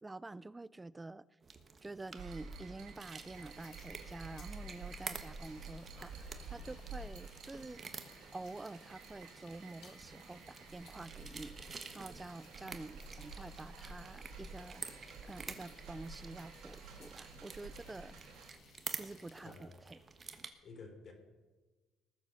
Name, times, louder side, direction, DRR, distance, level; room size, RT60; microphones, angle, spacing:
voice 1, 0.0-1.3 1.8-7.8 8.3-14.9 15.2-18.2 18.9-20.0, right 2 dB, 15° right, 0.4 m, -48 dB
sound 1, 1.4-20.5, right 5 dB, 30° right, 1.3 m, -50 dB
sound 2, 2.2-18.5, right 3 dB, 75° right, 2.1 m, -51 dB
sound 3, 3.2-19.5, left 6 dB, 60° left, 2.8 m, -64 dB
voice 2, 19.4-19.8 20.6-21.1, left 4 dB, 40° left, 3.4 m, -51 dB
19.5 x 7.5 x 6.4 m
cardioid pair, 125°, 0 cm